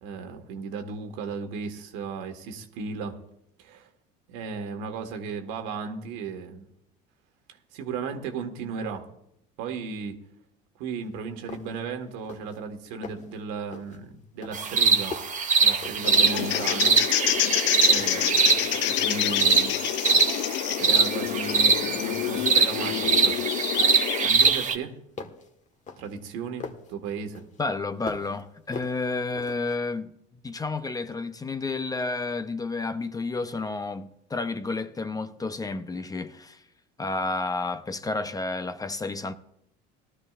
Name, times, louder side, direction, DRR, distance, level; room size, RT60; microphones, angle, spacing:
voice 1, 0.0-3.2 3.6-3.9 4.3-6.7 7.7-9.0 9.6-10.2 10.8-15.2 15.6-16.9 17.8-18.6 18.9-19.8 20.8-23.6 24.2-25.0 26.0-27.4, right 5 dB, 80° right, 1.6 m, -35 dB
sound 1, 11.0-11.1 11.5-11.9 12.2-12.6 12.9-13.4 13.7-14.0 14.4-16.3 16.5-17.6 17.9-19.1 19.5-19.7 20.1-20.5 20.9-21.8 22.3-22.7 23.0-24.1 24.4-26.9 27.3-28.4 28.7-29.8, left 4 dB, 35° left, 1.5 m, -42 dB
sound 2, 14.5-24.8, right 4 dB, 35° right, 1.3 m, -23 dB
sound 3, 16.0-24.3, left 14 dB, 60° left, 0.5 m, -27 dB
voice 2, 27.6-30.2 30.4-36.6 37.0-39.3, left 3 dB, 15° left, 0.7 m, -31 dB
18.5 x 12.5 x 2.5 m
supercardioid pair, 95°, 21 cm